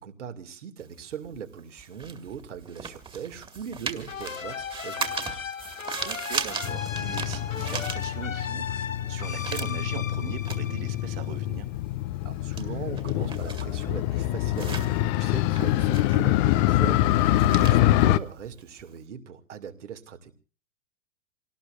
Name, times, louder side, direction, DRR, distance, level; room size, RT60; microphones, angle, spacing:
voice 1, 0.0-5.4 12.2-20.3, right 8 dB, 65° right, 7 dB, 2.6 m, -40 dB
sound 1, 0.8-8.6 8.9-19.0, right 5 dB, 15° right, 2.2 m, -38 dB
sound 2, 4.1-11.5, left 7 dB, 85° left, 0.9 m, -37 dB
voice 2, 6.0-11.7 17.7-17.8, right 13 dB, 50° right, 7 dB, 2.5 m, -40 dB
Motorcycle, 6.6-18.2, left 14 dB, 35° left, 0.8 m, -25 dB
28.0 x 18.5 x 2.6 m, 0.37 s
figure-of-eight pair, 105°, 38 cm